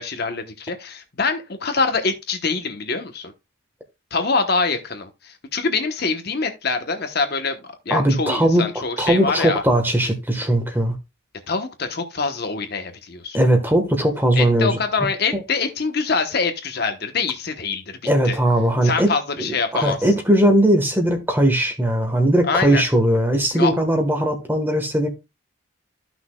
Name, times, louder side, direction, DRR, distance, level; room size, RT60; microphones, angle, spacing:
voice 1, 0.0-3.3 4.1-7.6 7.9-9.6 11.5-13.4 14.4-18.0 18.2-18.4 18.8-20.0 22.5-22.8 23.5-23.7, left 4 dB, 50° left, 1.1 m, -24 dB
voice 2, 7.9-8.6 9.0-10.9 13.3-14.8 15.3-15.4 18.0-19.1 19.4-25.1, right 1 dB, 10° right, 1.4 m, -19 dB
13.5 x 6.0 x 2.3 m
head